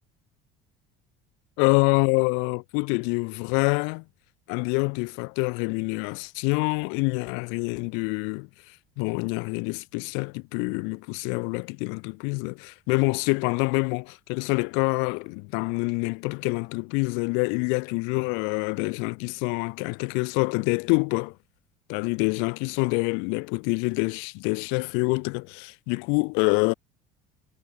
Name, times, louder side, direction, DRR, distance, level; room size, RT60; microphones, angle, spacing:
voice 1, 1.6-4.0 4.5-21.3 21.9-26.7, left 36 dB, 90° left, 0.6 m, -26 dB
cardioid pair, 155°, 19 cm